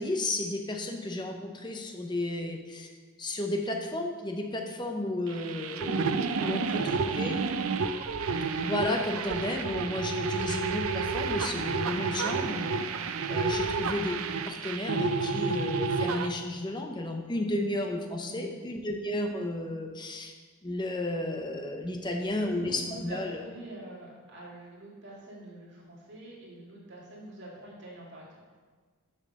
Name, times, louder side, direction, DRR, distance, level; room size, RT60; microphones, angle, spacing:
voice 1, 0.0-2.9 3.2-6.8 7.2-7.4 8.6-14.2 14.5-20.3 20.6-23.4, left 1 dB, 20° left, 3 dB, 0.7 m, -33 dB
sound 1, 5.3-16.3, right 4 dB, 80° right, 0.5 m, -30 dB
voice 2, 6.4-7.6 18.2-18.6 22.1-28.4, right 1 dB, 55° right, -5 dB, 2.3 m, -45 dB
7.1 x 5.4 x 6.5 m, 1.5 s
head